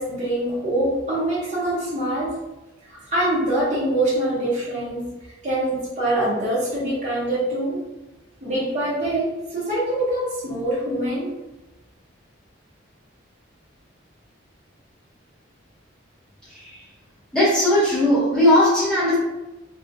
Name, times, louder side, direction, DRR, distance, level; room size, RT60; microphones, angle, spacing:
voice 1, 0.0-2.3 3.1-5.1 5.4-7.8 8.4-11.3, right 1 dB, 35° right, -10 dB, 0.7 m, -24 dB
voice 2, 16.5-16.8 17.3-19.1, left 1 dB, 5° left, -11 dB, 0.7 m, -18 dB
2.6 x 2.1 x 2.5 m, 1.0 s
head